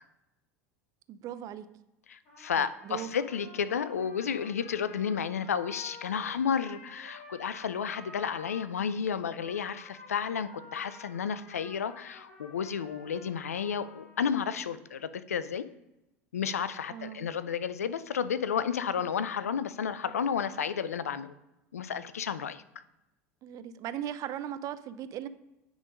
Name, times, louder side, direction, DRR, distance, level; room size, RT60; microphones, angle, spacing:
voice 1, 1.1-1.6 2.6-3.1 16.9-17.3 23.4-25.3, right 10 dB, 45° right, 13 dB, 0.6 m, -38 dB
voice 2, 2.1-15.7 16.3-21.3 21.7-22.6, left 7 dB, 85° left, 15 dB, 0.4 m, -32 dB
Trumpet, 2.3-8.7 9.2-14.5, left 2 dB, 60° left, 3.1 m, -51 dB
9.3 x 3.8 x 5.1 m, 0.95 s
hypercardioid pair, 80°, 8 cm